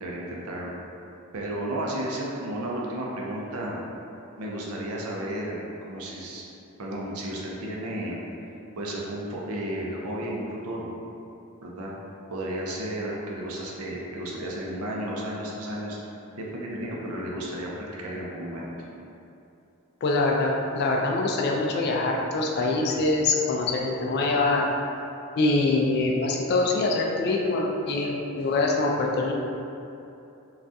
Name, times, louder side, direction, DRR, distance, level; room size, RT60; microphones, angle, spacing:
voice 1, 0.0-0.7 1.3-3.8 4.4-5.6 5.9-6.4 6.8-8.2 8.8-10.9 11.6-11.9 12.3-16.0 16.4-18.7, right 1 dB, 80° right, -3 dB, 0.5 m, -33 dB
voice 2, 20.0-24.7 25.4-29.3, left 2 dB, 50° left, 0 dB, 0.3 m, -24 dB
3.4 x 2.3 x 2.6 m, 2.8 s
head